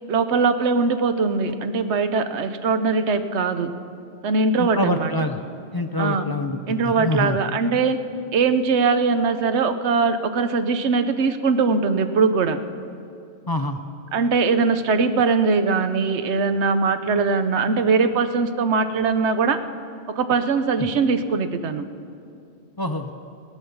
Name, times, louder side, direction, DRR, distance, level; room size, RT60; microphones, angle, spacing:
voice 1, 0.1-3.7 4.2-5.3 6.0-6.2 6.7-8.0 8.3-12.6 14.1-19.6 20.1-21.9, right 4 dB, 80° right, 9 dB, 1.1 m, -21 dB
voice 2, 4.6-5.4 5.7-6.6 6.8-7.4 13.5-13.8 20.8-20.9 22.8-23.1, left 2 dB, 30° left, 6 dB, 0.4 m, -25 dB
17.5 x 9.2 x 7.0 m, 2.5 s
omnidirectional pair, 1.1 m